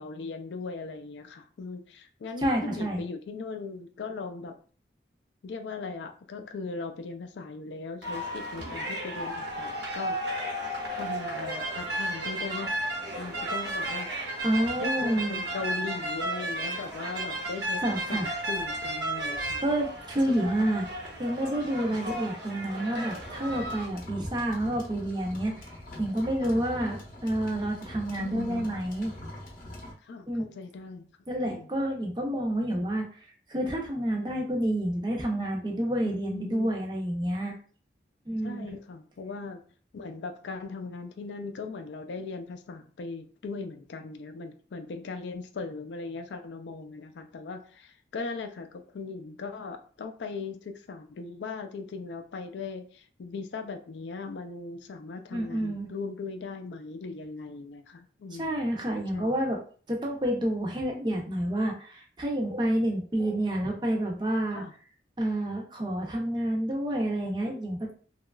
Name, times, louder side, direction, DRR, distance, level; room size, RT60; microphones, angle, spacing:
voice 1, 0.0-4.5 5.4-10.2 10.9-12.9 13.2-14.1 14.8-19.8 20.3-20.5 21.8-22.0 26.4-26.6 28.2-28.8 30.0-31.1 31.4-31.8 32.8-32.9 36.0-36.7 38.4-39.6 39.9-58.6 59.1-59.3 64.5-64.7, left 4 dB, 90° left, 7 dB, 0.4 m, -39 dB
voice 2, 2.4-3.0 14.4-15.4 17.8-18.3 19.6-20.9 21.2-25.7 26.0-29.1 30.3-30.6 31.3-33.0 33.5-37.6 38.3-38.8 55.3-55.9 58.4-59.6 59.9-64.6 65.2-67.9, right 1 dB, 25° right, 1 dB, 0.5 m, -29 dB
sound 1, 8.0-23.9, right 1 dB, 90° right, 0.9 m, -34 dB
sound 2, 23.1-29.9, left 1 dB, 50° left, 0.7 m, -43 dB
2.9 x 2.3 x 2.2 m, 0.42 s
head